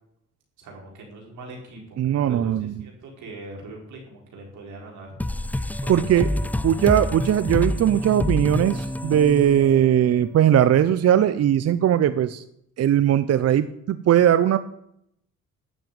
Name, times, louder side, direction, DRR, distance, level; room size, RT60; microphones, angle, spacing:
voice 1, 0.6-5.1 5.8-6.1, right 2 dB, 75° right, 0 dB, 5.2 m, -41 dB
voice 2, 2.0-2.7 5.9-6.3 6.6-12.4 12.8-14.6, right 10 dB, 55° right, 14 dB, 0.7 m, -19 dB
sound 1, 5.2-10.5, left 1 dB, 5° left, 0.4 m, -28 dB
12.5 x 7.0 x 9.4 m, 0.76 s
cardioid pair, 90°, 30 cm